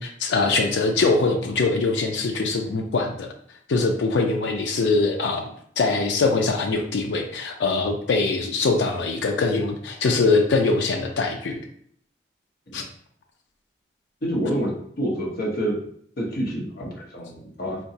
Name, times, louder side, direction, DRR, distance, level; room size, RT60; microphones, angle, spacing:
voice 1, 0.0-3.3 3.7-5.4 5.8-11.6 12.7-12.8, left 3 dB, 80° left, 3 dB, 0.4 m, -22 dB
voice 2, 14.2-15.8 16.2-17.8, right 1 dB, 55° left, -2 dB, 0.8 m, -27 dB
3.8 x 2.2 x 2.7 m, 0.64 s
head